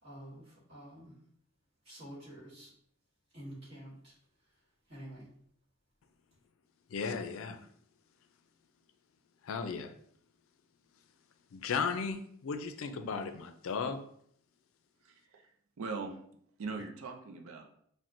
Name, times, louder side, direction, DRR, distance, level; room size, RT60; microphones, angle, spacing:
voice 1, 0.0-1.1 1.8-2.7 3.3-4.1 4.9-5.3, right 1 dB, 50° right, -7 dB, 1.4 m, -48 dB
voice 2, 6.9-7.6 9.4-9.9 11.5-14.0, left 5 dB, 70° left, 7 dB, 0.4 m, -35 dB
voice 3, 15.0-16.2 16.6-17.7, right 4 dB, 75° right, 3 dB, 0.5 m, -41 dB
5.8 x 2.1 x 2.5 m, 0.65 s
head